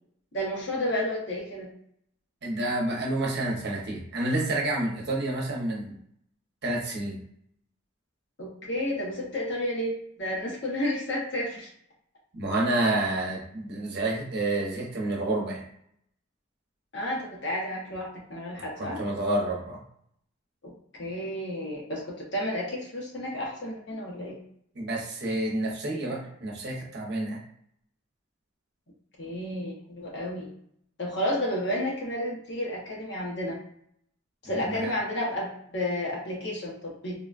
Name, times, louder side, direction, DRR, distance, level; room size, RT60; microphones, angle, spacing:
voice 1, 0.3-1.7 8.4-11.7 16.9-19.0 20.6-20.7 21.0-24.4 29.2-30.5 31.0-33.6 34.4-37.1, left 1 dB, 60° left, -4 dB, 1.0 m, -31 dB
voice 2, 2.4-6.0 6.6-7.2 12.3-15.7 18.8-19.8 24.7-27.4 34.5-34.9, right 2 dB, 55° right, -2 dB, 0.8 m, -29 dB
3.8 x 2.2 x 2.5 m, 0.68 s
head